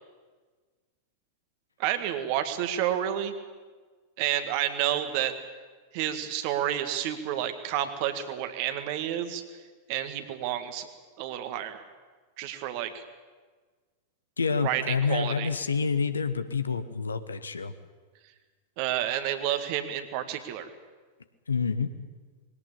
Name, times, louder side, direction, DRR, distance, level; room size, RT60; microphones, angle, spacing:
voice 1, 1.8-3.3 4.2-5.3 5.9-9.4 9.9-10.9 11.2-11.8 12.4-13.0 14.6-15.5 18.8-20.7, right 11 dB, 45° right, 9 dB, 1.9 m, -30 dB
voice 2, 14.4-17.7 21.5-21.9, left 5 dB, 75° left, 11 dB, 1.2 m, -28 dB
21.0 x 17.5 x 8.5 m, 1.4 s
figure-of-eight pair, 90°, 0 cm